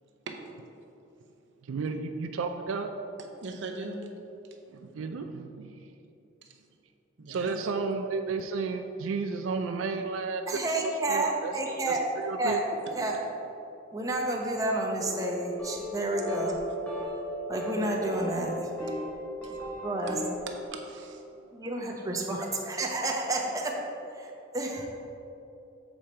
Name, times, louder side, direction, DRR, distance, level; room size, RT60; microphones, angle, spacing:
voice 1, 1.7-2.9 4.7-5.9 7.3-12.6, right 4 dB, 85° right, 6 dB, 0.4 m, -33 dB
voice 2, 3.2-4.0 6.4-6.5 7.2-7.5 19.4-19.5 20.5-21.2, right 3 dB, 65° right, 2 dB, 0.8 m, -40 dB
voice 3, 10.5-12.1 12.4-12.7 13.0-13.2 13.9-16.6 17.5-18.7 19.8-20.2 21.5-23.8 24.2-24.3 24.5-24.9, right 2 dB, 20° right, -1 dB, 0.7 m, -30 dB
sound 1, 15.0-20.0, left 1 dB, 80° left, 1.4 m, -41 dB
sound 2, 15.6-16.0 16.3-16.6 16.9-17.2 17.5-17.8 18.1-19.1 19.4-20.4, left 1 dB, 5° left, 1.4 m, -36 dB
7.3 x 5.0 x 4.2 m, 2.9 s
head